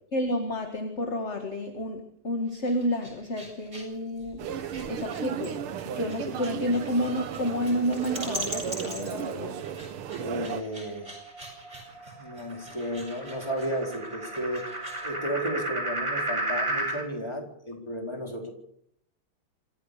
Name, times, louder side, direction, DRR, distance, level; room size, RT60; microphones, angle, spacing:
voice 1, 0.1-4.5 4.9-5.6 5.9-9.6, equal, 35° left, 5 dB, 2.1 m, -30 dB
sound 1, 2.4-15.1, right 1 dB, 35° right, 8.5 m, -43 dB
sound 2, 4.4-10.6, right 9 dB, 85° right, 1.9 m, -35 dB
voice 2, 10.2-11.1 12.2-14.6 15.0-18.5, equal, 10° left, 1 dB, 4.2 m, -33 dB
sound 3, 10.3-17.0, right 2 dB, 15° right, 3.6 m, -34 dB
26.5 x 14.5 x 6.7 m, 0.69 s
omnidirectional pair, 2.3 m